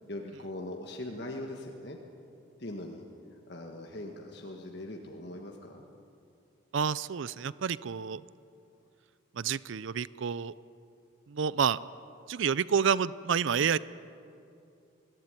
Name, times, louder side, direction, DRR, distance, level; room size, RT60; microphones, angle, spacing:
voice 1, 0.1-2.0 2.6-3.0 3.3-5.8, left 1 dB, 55° left, 1 dB, 1.5 m, -41 dB
voice 2, 6.7-8.2 9.3-10.5 11.3-11.8 12.3-13.8, right 7 dB, 65° right, 18 dB, 0.4 m, -29 dB
21.5 x 16.5 x 9.6 m, 2.6 s
head